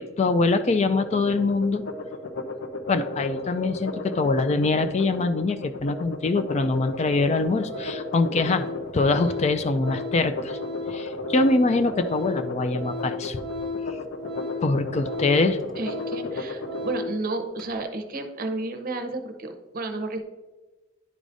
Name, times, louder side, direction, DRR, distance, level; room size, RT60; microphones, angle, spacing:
voice 1, 0.0-1.8 2.9-8.7 8.9-10.6 10.9-13.4 14.6-15.6, left 3 dB, 35° left, 9 dB, 0.3 m, -23 dB
sound 1, 0.9-16.9, left 2 dB, 70° left, 0.7 m, -35 dB
Organ, 6.6-6.7 7.2-7.4 7.7-17.2 17.6-17.7, left 3 dB, ahead, 0.8 m, -36 dB
voice 2, 15.8-20.2, right 2 dB, 50° right, 7 dB, 0.7 m, -31 dB
11.0 x 4.8 x 2.6 m, 1.3 s
head